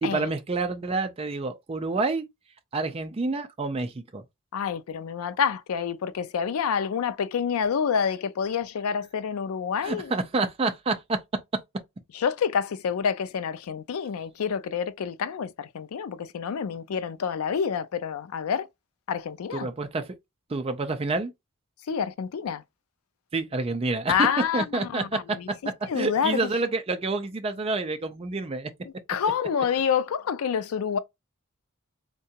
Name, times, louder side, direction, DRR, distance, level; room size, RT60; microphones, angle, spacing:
voice 1, 0.0-2.3 2.7-4.2 9.8-11.2 19.5-20.2 20.5-21.3 23.3-24.3 24.5-25.4 25.9-28.7, right 3 dB, 25° right, 0.4 m, -28 dB
voice 2, 4.5-10.1 12.1-18.7 19.1-19.7 21.9-22.6 24.1-25.5 25.9-26.4 29.1-31.0, left 7 dB, 75° left, 0.4 m, -28 dB
3.7 x 2.2 x 2.7 m
head